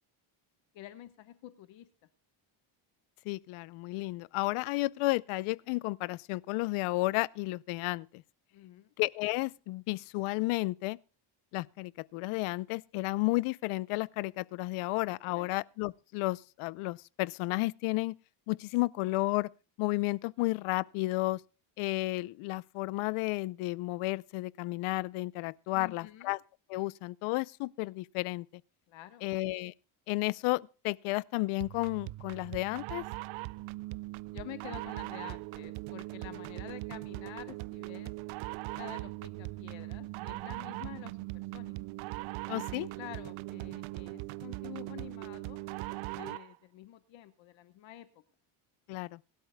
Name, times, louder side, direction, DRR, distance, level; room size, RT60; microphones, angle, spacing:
voice 1, 0.7-1.9 8.5-8.9 15.2-15.5 25.7-26.3 28.9-29.3 34.3-38.1 38.7-41.7 42.7-45.7 46.2-48.1, left 13 dB, 65° left, 1.2 m, -48 dB
voice 2, 3.2-8.2 9.0-11.0 11.5-18.2 18.5-19.5 19.8-21.4 21.8-26.4 26.7-28.5 29.2-29.7 30.1-33.1 42.5-42.9 48.9-49.2, left 21 dB, 85° left, 0.7 m, -32 dB
sound 1, 31.6-46.6, right 21 dB, 70° right, 0.5 m, -40 dB
22.0 x 12.5 x 2.2 m
cardioid pair, 140°, 49 cm